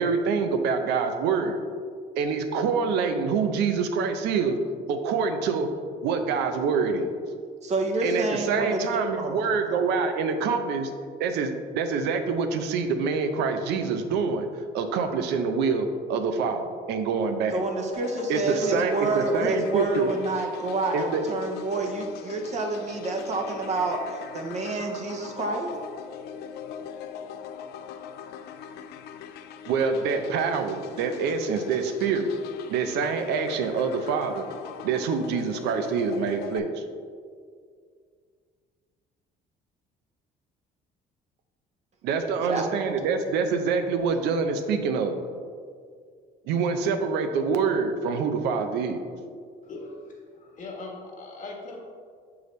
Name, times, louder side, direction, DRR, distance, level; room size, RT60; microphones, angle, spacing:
voice 1, 0.0-1.6 2.2-4.6 4.9-5.7 6.0-7.1 8.0-10.9 11.2-14.5 14.7-17.6 18.3-20.1 20.9-21.2 29.7-32.4 32.7-34.5 34.8-36.8 42.0-45.2 46.5-49.1, right 5 dB, 90° right, 7 dB, 0.6 m, -26 dB
voice 2, 7.6-8.8 9.2-9.4 9.7-9.9 17.5-25.7 42.4-42.7, right 2 dB, 40° right, 2 dB, 0.8 m, -28 dB
sound 1, 17.9-36.6, left 7 dB, 75° left, 0.4 m, -41 dB
voice 3, 49.6-51.8, left 3 dB, 50° left, -1 dB, 1.3 m, -40 dB
6.6 x 4.7 x 3.1 m, 2.1 s
cardioid pair, 110°, 17 cm